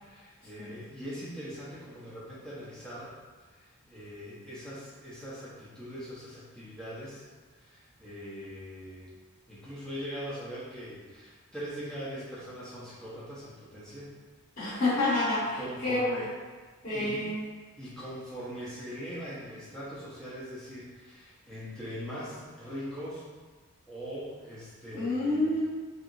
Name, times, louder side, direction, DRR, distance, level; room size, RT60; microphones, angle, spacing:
voice 1, 0.0-3.1 3.5-7.2 7.5-9.1 9.5-14.1 15.5-16.3 16.9-17.4 17.8-23.3 23.9-25.5, equal, 5° left, -10 dB, 0.9 m, -41 dB
voice 2, 14.6-16.2 16.8-17.4 24.9-25.6, left 2 dB, 40° left, -13 dB, 1.1 m, -28 dB
3.4 x 2.9 x 2.6 m, 1.4 s
head